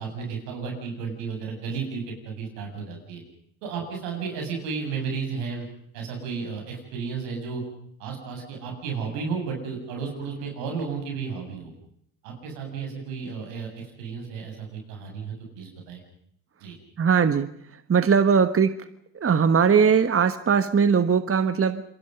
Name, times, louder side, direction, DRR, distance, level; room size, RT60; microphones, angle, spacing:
voice 1, 0.0-3.2 3.6-5.7 5.9-7.6 8.0-11.7 12.2-16.0 16.6-16.8, right 5 dB, 85° right, 2 dB, 7.6 m, -33 dB
voice 2, 17.0-17.5 17.9-18.7 19.2-21.8, right 6 dB, 30° right, 11 dB, 1.4 m, -20 dB
27.5 x 23.0 x 5.4 m, 0.67 s
supercardioid pair, 70°, 48 cm